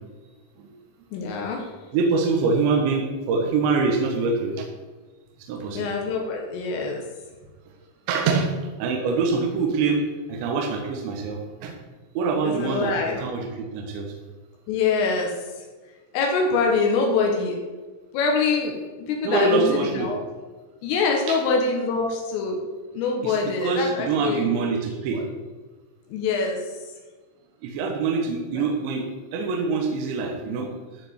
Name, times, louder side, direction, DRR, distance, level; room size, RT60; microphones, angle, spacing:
voice 1, 1.1-1.7 5.8-7.0 12.4-13.2 14.7-15.7 16.1-17.6 18.1-20.2 20.8-22.6 22.9-24.8 25.1-25.2 26.1-26.9 28.6-28.7, left 4 dB, 85° left, 0 dB, 4.0 m, -25 dB
voice 2, 1.9-4.6 5.5-5.8 8.1-8.5 8.8-10.0 10.3-11.7 12.1-14.1 19.2-20.1 21.3-21.4 23.2-25.2 27.6-29.1 29.3-30.7, right 4 dB, 70° right, 1 dB, 3.4 m, -24 dB
14.0 x 5.1 x 8.0 m, 1.3 s
omnidirectional pair, 5.7 m